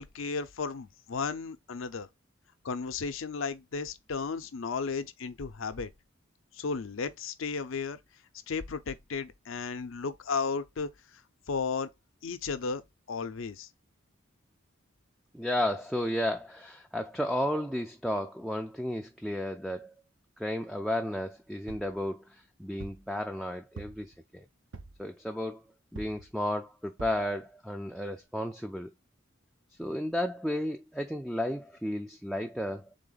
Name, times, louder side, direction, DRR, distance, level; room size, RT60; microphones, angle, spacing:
voice 1, 0.0-2.1 2.6-5.9 6.5-8.0 8.5-11.2 11.5-11.9 12.2-12.8 13.1-13.7, left 5 dB, 80° left, 0.6 m, -34 dB
voice 2, 15.3-19.9 20.4-24.5 25.0-25.6 25.9-28.9 29.8-32.9, left 1 dB, ahead, 0.3 m, -33 dB
sound 1, 21.7-22.0 22.8-23.1 23.8-24.2 24.7-25.1 26.0-26.3 27.0-27.3 27.9-28.0 28.2-28.3, right 3 dB, 80° right, 0.8 m, -45 dB
3.8 x 3.5 x 3.8 m
head